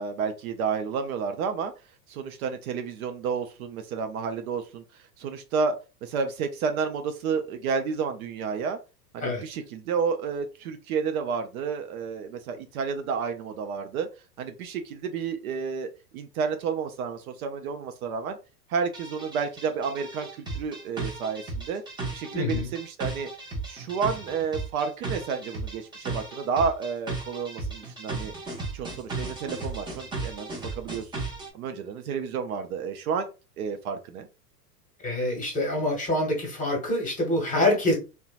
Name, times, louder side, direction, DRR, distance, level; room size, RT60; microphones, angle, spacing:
voice 1, 0.0-1.7 2.1-5.7 6.0-8.8 9.1-14.1 14.4-18.4 18.7-21.8 22.1-23.3 23.7-28.3 28.7-31.0 31.5-33.3 33.6-34.3, right 5 dB, 60° right, 7 dB, 0.5 m, -30 dB
sound 1, 18.9-31.5, right 3 dB, 10° right, 0.6 m, -35 dB
voice 2, 22.3-22.7 35.0-37.9, left 1 dB, 15° left, 0 dB, 1.1 m, -26 dB
2.7 x 2.2 x 2.4 m, 0.31 s
hypercardioid pair, 105°, 49 cm